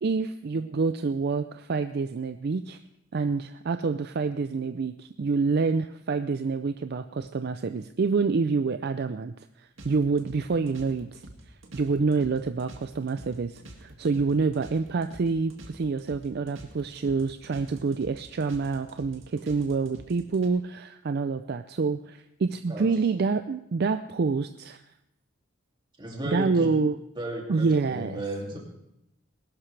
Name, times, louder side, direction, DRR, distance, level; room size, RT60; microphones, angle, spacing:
voice 1, 0.0-2.8 3.1-11.2 11.7-24.8 26.3-27.0 27.5-28.2, right 4 dB, 50° right, 10 dB, 0.4 m, -27 dB
sound 1, 9.8-20.5, right 1 dB, 65° right, 2.1 m, -47 dB
voice 2, 26.0-26.7 27.2-28.6, right 1 dB, 25° right, 0 dB, 2.5 m, -35 dB
20.0 x 12.0 x 3.3 m, 0.82 s
head